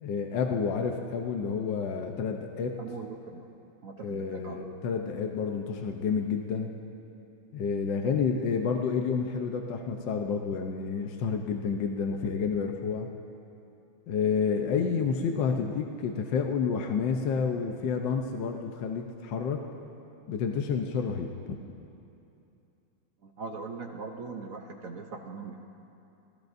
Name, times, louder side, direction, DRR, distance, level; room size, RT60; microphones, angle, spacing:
voice 1, 0.0-2.8 4.0-6.7 7.5-13.1 14.1-19.6 20.3-21.3, left 6 dB, 65° left, 3 dB, 1.4 m, -29 dB
voice 2, 2.8-3.4 3.8-4.6 23.2-25.6, right 4 dB, 60° right, 3 dB, 0.8 m, -40 dB
29.0 x 18.0 x 2.6 m, 2.8 s
omnidirectional pair, 2.4 m